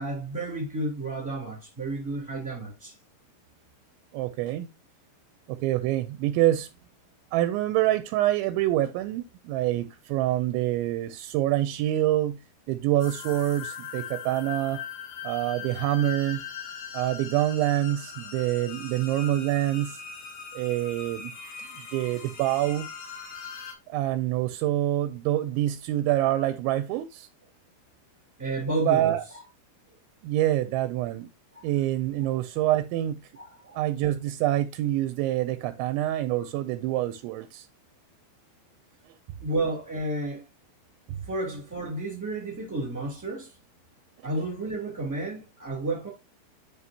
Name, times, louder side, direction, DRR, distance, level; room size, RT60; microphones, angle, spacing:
voice 1, 0.0-3.0 28.4-29.4 31.5-31.6 33.4-33.8 39.4-40.4 41.1-43.5 44.2-46.1, right 2 dB, 5° right, 1.8 m, -32 dB
voice 2, 4.1-4.7 5.5-6.7 7.3-12.4 12.7-14.8 15.2-16.4 16.9-20.0 20.5-21.3 21.9-22.9 23.9-27.3 28.9-29.2 30.2-31.3 31.6-33.2 33.8-37.7, right 14 dB, 85° right, 2.7 m, -26 dB
sound 1, 13.0-23.7, left 7 dB, 70° left, 4.9 m, -40 dB
11.0 x 5.5 x 2.8 m
omnidirectional pair, 5.8 m